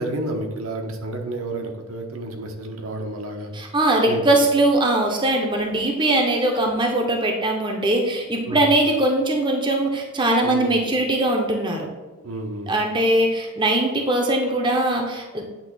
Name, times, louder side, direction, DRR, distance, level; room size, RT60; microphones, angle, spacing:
voice 1, 0.0-3.5 4.1-4.2 8.5-8.7 10.4-10.7 12.2-12.7, right 1 dB, 70° right, 3 dB, 1.0 m, -30 dB
voice 2, 3.5-11.9 12.7-15.4, right 1 dB, 20° right, 1 dB, 0.7 m, -21 dB
8.8 x 3.1 x 6.1 m, 1.2 s
head